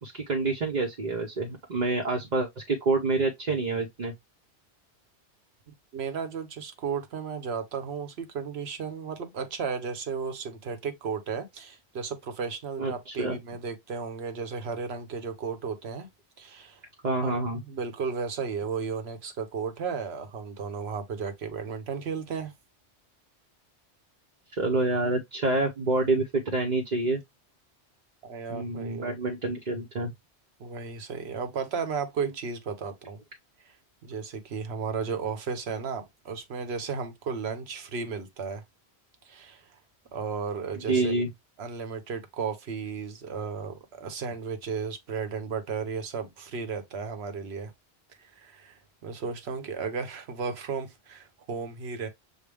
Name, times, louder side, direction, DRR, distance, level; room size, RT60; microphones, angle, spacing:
voice 1, 0.0-4.1 12.8-13.4 17.0-17.6 24.5-27.2 28.5-30.1 40.9-41.3, right 2 dB, 45° right, 0.8 m, -27 dB
voice 2, 5.9-16.1 16.4-16.8 17.2-22.5 28.2-29.1 30.6-33.2 33.7-33.8 34.0-38.6 39.2-39.7 40.1-41.1 41.6-47.7 48.2-52.1, right 5 dB, 70° right, 1.1 m, -34 dB
6.4 x 2.2 x 3.3 m
omnidirectional pair, 1.1 m